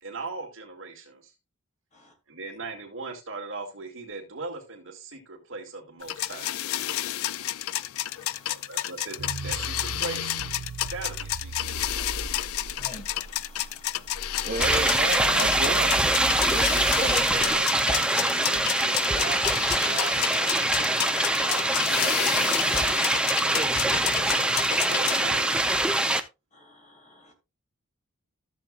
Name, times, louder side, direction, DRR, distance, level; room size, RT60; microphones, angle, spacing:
voice 1, 0.0-1.3 2.3-6.5 8.5-10.3 10.9-11.9 24.9-25.6, right 3 dB, 60° right, 2.4 m, -38 dB
sound 1, 6.0-25.3, left 13 dB, 75° left, 0.4 m, -31 dB
sound 2, 9.2-17.6, right 3 dB, 80° right, 0.6 m, -39 dB
voice 2, 12.7-13.9 14.2-14.5 26.6-26.7 27.0-27.1, left 1 dB, 30° left, 2.3 m, -48 dB
voice 3, 14.3-23.0 23.4-24.9, right 3 dB, 40° right, 2.7 m, -36 dB
sound 3, 14.6-26.2, right 1 dB, 5° right, 0.6 m, -24 dB
13.5 x 7.4 x 2.5 m
head